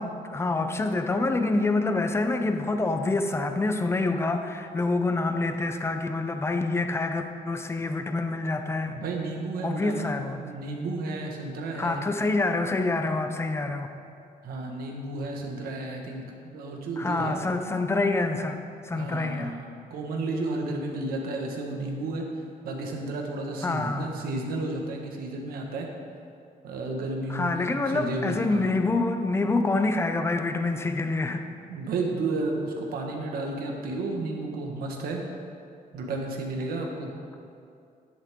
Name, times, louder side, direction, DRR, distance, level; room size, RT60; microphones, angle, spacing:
voice 1, 0.0-9.0 9.6-10.4 11.8-13.9 17.0-19.5 23.6-24.1 27.3-31.4, left 3 dB, 15° left, 6 dB, 0.7 m, -27 dB
voice 2, 8.9-10.1 10.4-12.0 14.4-17.4 18.9-22.3 22.6-25.9 26.6-28.7 31.7-35.2 35.9-37.1, right 2 dB, 85° right, 1 dB, 1.6 m, -32 dB
11.5 x 10.5 x 3.8 m, 2.4 s
cardioid pair, 145°, 15 cm